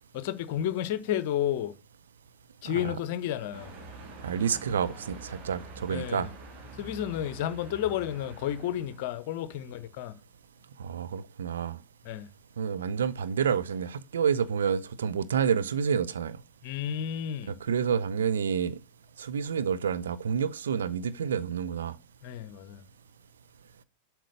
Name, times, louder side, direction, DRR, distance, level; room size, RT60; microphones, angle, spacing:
voice 1, 0.1-1.7 2.6-3.7 5.9-6.3 6.8-10.1 12.0-12.3 16.6-17.6 22.2-22.8, left 11 dB, 50° left, 0.9 m, -31 dB
sound 1, 3.5-9.1, right 2 dB, 40° right, 2.4 m, -46 dB
voice 2, 4.2-6.3 10.8-11.8 12.6-16.4 17.6-18.8 19.2-22.0, right 7 dB, 65° right, 0.7 m, -29 dB
7.6 x 4.7 x 6.7 m
figure-of-eight pair, 90°, 0 cm